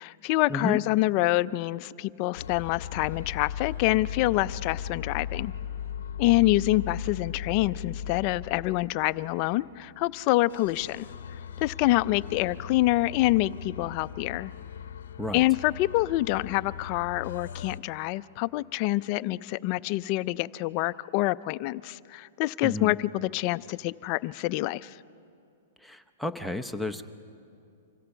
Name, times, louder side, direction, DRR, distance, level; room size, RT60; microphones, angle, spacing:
voice 1, 0.0-5.5 6.2-11.1 11.6-14.5 15.3-24.9, left 18 dB, 40° left, 16 dB, 0.4 m, -26 dB
sound 1, 2.3-10.1 10.5-17.8, left 8 dB, 80° left, 0.7 m, -38 dB
voice 2, 22.6-22.9 25.8-27.0, left 1 dB, ahead, 10 dB, 0.7 m, -32 dB
25.5 x 16.5 x 7.0 m, 2.5 s
hypercardioid pair, 150°, 0 cm